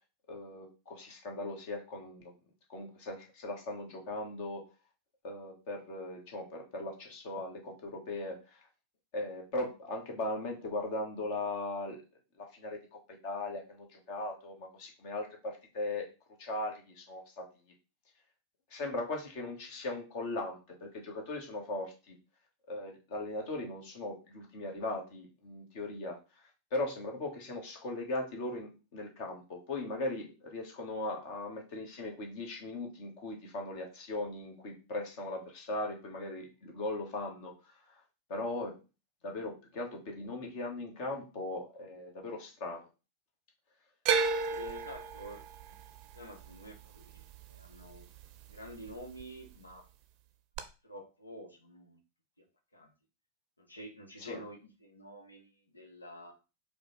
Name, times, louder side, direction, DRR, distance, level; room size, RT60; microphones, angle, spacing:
voice 1, 0.3-2.3 2.7-4.6 5.2-8.6 9.1-12.0 12.4-16.1 16.4-17.4 18.7-22.1 22.7-26.2 26.7-37.5 38.3-38.8 39.2-42.8 54.2-54.4, left 2 dB, 45° left, 2 dB, 1.5 m, -38 dB
sound 1, 44.0-48.2 48.5-49.2 50.6-50.7, right 5 dB, 40° right, 0.6 m, -33 dB
voice 2, 44.4-45.7 46.1-48.1 48.5-49.8 50.8-52.0 52.4-52.5 52.7-52.9 53.6-56.3, equal, 80° left, 4 dB, 1.1 m, -49 dB
4.9 x 2.4 x 4.2 m, 0.30 s
figure-of-eight pair, 90°, 0 cm